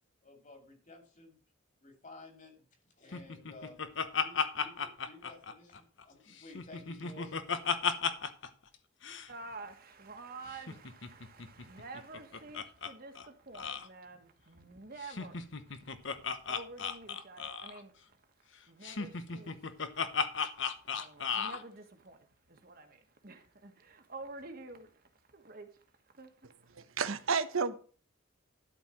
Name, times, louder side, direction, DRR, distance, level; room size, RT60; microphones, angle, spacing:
voice 1, 0.2-1.4 1.8-2.6 3.0-3.8 4.2-7.4, left 2 dB, 40° left, 3.0 m, -54 dB
Laughter, 3.1-6.0 6.4-8.5 8.7-8.8 9.0-9.3 10.5-12.9 13.2-13.3 13.5-13.9 15.0-17.8 18.8-21.6, left 6 dB, 65° left, 1.0 m, -35 dB
voice 2, 9.3-18.2 18.7-19.7 19.9-20.4 20.8-26.9, right 3 dB, 45° right, 1.5 m, -50 dB
voice 3, 26.8-27.8, right 5 dB, 90° right, 0.9 m, -31 dB
12.0 x 4.6 x 7.6 m
head